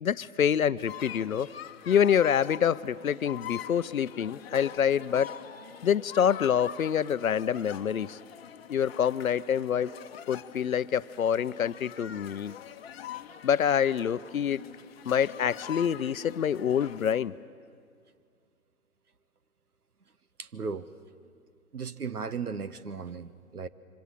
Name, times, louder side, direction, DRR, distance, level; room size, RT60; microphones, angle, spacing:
voice 1, 0.0-1.5 1.9-5.3 5.8-8.2 8.7-9.9 10.3-12.5 13.4-14.6 15.1-17.3, left 8 dB, 65° left, 16 dB, 0.8 m, -26 dB
sound 1, 0.8-17.2, left 10 dB, 40° left, 1.1 m, -44 dB
voice 2, 20.4-20.9 21.7-23.7, right 5 dB, 80° right, 13 dB, 1.2 m, -36 dB
26.0 x 25.0 x 7.6 m, 2.2 s
figure-of-eight pair, 130°, 45 cm